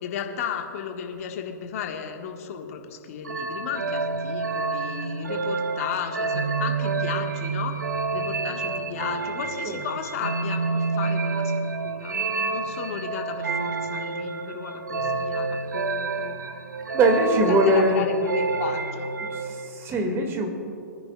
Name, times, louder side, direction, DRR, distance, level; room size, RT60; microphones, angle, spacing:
voice 1, 0.0-7.8 8.1-11.5 11.8-16.4 17.5-19.1, left 8 dB, 55° left, 3 dB, 1.5 m, -34 dB
sound 1, 3.2-19.7, right 4 dB, 80° right, 0.8 m, -28 dB
voice 2, 16.9-18.1 19.3-20.5, right 1 dB, 25° right, 3 dB, 2.0 m, -21 dB
25.0 x 10.5 x 2.3 m, 2.9 s
figure-of-eight pair, 110°, 10 cm